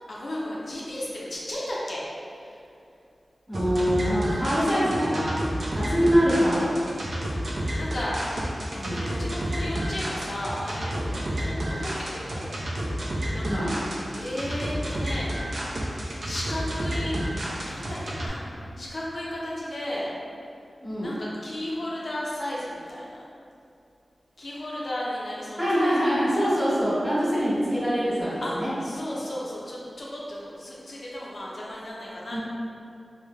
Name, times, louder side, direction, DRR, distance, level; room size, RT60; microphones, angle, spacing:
voice 1, 0.1-2.0 2.3-2.6 5.7-6.3 7.7-8.2 8.7-12.6 13.3-13.7 14.1-15.3 16.2-17.2 17.6-18.4 18.8-20.1 21.0-23.2 24.4-26.5 28.4-28.5 28.8-32.4, left 1 dB, 65° left, -5 dB, 0.4 m, -34 dB
voice 2, 3.5-5.4 5.9-6.7 8.7-9.1 13.4-13.7 20.8-21.1 25.6-28.7 32.3-32.4, equal, 15° right, -12 dB, 1.1 m, -24 dB
sound 1, 3.5-18.3, equal, 70° right, 0.4 m, -30 dB
3.0 x 2.0 x 2.2 m, 2.5 s
wide cardioid pair, 60°, 0 cm